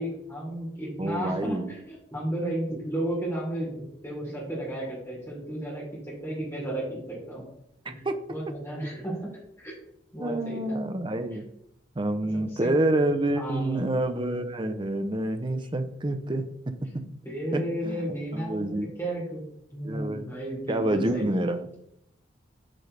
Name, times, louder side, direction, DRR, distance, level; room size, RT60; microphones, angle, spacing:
voice 1, 0.0-7.4 7.8-8.0 8.3-9.3 9.6-9.7 10.1-10.8 12.5-12.7 13.4-14.4 17.2-19.4 19.7-21.3, right 1 dB, 15° left, -5 dB, 3.2 m, -33 dB
voice 2, 1.0-1.7 7.9-8.2 10.2-11.5 12.0-16.4 17.5-18.9 19.8-20.3 20.7-21.7, right 1 dB, 25° right, 8 dB, 0.6 m, -28 dB
9.1 x 5.2 x 3.3 m, 0.76 s
head